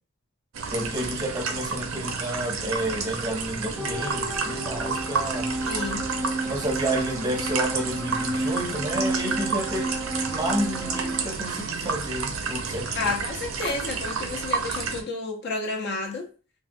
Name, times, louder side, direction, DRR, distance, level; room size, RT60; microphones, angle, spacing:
sound 1, 0.5-15.0, right 5 dB, 70° right, 0.5 m, -31 dB
voice 1, 0.7-5.5 6.4-10.0 10.3-13.1, right 1 dB, 20° right, 0.6 m, -30 dB
sound 2, 3.8-11.2, right 1 dB, 10° left, 0.9 m, -32 dB
voice 2, 5.6-6.0 12.9-16.3, left 3 dB, 55° left, 0.6 m, -30 dB
3.4 x 2.2 x 2.6 m
head